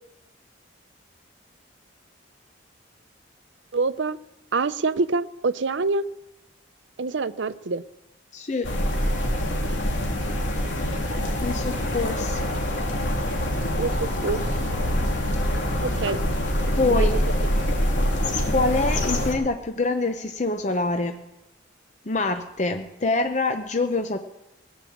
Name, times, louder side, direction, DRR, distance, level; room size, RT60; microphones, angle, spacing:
voice 1, 3.7-4.2 4.5-6.0 7.0-7.8 13.8-14.4 15.8-16.2 16.9-17.1, right 4 dB, 70° right, 13 dB, 0.6 m, -25 dB
voice 2, 8.3-8.7 11.4-12.4 16.8-17.2 18.5-21.2 22.1-24.2, left 3 dB, 35° left, 6 dB, 0.8 m, -25 dB
sound 1, 8.6-19.3, equal, 70° left, 2.6 m, -25 dB
19.0 x 9.6 x 7.2 m, 0.98 s
head